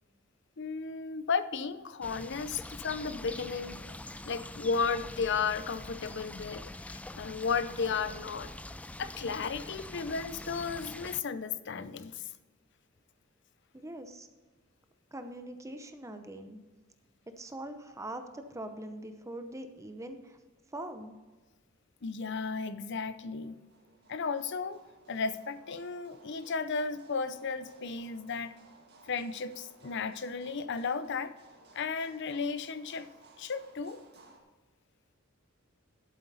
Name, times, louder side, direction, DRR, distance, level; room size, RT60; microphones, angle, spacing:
voice 1, 0.6-3.8 4.3-8.5 9.0-12.2 22.0-23.5 24.1-24.8 25.1-28.5 29.1-31.3 31.7-33.1 33.4-34.0, left 5 dB, 60° left, 14 dB, 0.6 m, -34 dB
sound 1, 2.0-11.2, left 1 dB, 5° left, 0.3 m, -44 dB
voice 2, 13.7-14.3 15.1-16.6 17.4-20.4 20.7-21.2, right 1 dB, 15° right, 7 dB, 0.7 m, -42 dB
sound 2, 23.3-34.4, right 3 dB, 55° right, 1.8 m, -59 dB
11.5 x 8.2 x 4.1 m, 1.3 s
head